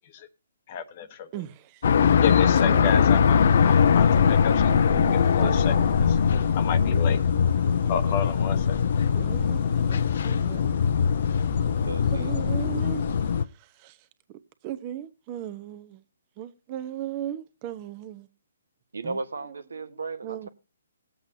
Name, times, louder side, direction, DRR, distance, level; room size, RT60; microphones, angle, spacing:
voice 1, 0.7-1.3 2.2-6.2 6.5-7.2 7.9-8.8, left 7 dB, 40° left, 1.1 m, -32 dB
sound 1, 1.8-13.4, left 7 dB, 60° left, 0.5 m, -21 dB
voice 2, 2.7-3.1 4.2-5.9 6.7-7.1 9.1-10.8 12.2-13.0 13.8-13.9 14.6-16.0 16.4-18.3 19.0-19.2 20.2-20.5, right 11 dB, 30° right, 1.0 m, -37 dB
sound 2, 3.4-13.4, right 1 dB, 5° right, 0.7 m, -38 dB
voice 3, 7.6-8.2 11.5-12.4 18.9-20.5, right 3 dB, 85° right, 1.2 m, -36 dB
19.5 x 8.0 x 2.8 m
hypercardioid pair, 145°, 0 cm